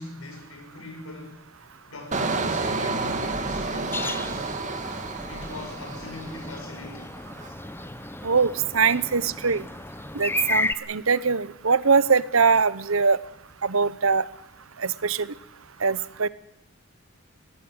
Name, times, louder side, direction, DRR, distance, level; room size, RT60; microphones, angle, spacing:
voice 1, 0.0-1.4 1.9-4.4 5.3-7.1, left 2 dB, 90° left, 3 dB, 7.3 m, -40 dB
Engine, 2.1-6.8 7.1-7.5, right 3 dB, 35° right, 2.2 m, -30 dB
sound 1, 3.9-10.7, left 2 dB, 10° left, 0.7 m, -33 dB
voice 2, 8.2-9.6 10.1-13.2 13.6-14.2 14.8-15.3 15.8-16.3, right 5 dB, 75° right, 17 dB, 1.0 m, -22 dB
22.0 x 18.0 x 8.0 m, 0.83 s
head